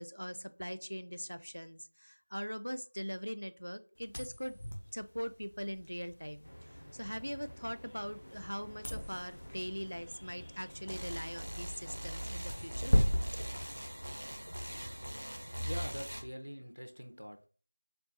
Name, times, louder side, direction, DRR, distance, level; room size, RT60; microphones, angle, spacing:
voice 1, 0.0-4.6 4.9-12.9, equal, 75° left, 11 dB, 0.5 m, -41 dB
sound 1, 4.0-14.5, equal, 25° left, 0.6 m, -37 dB
sound 2, 6.4-15.5, equal, 40° left, 0.9 m, -52 dB
sound 3, 10.9-16.2, equal, 25° right, 0.6 m, -41 dB
voice 2, 15.6-17.5, equal, 80° right, 6 dB, 0.8 m, -44 dB
4.4 x 2.4 x 4.0 m, 0.38 s
figure-of-eight pair, 180°, 0 cm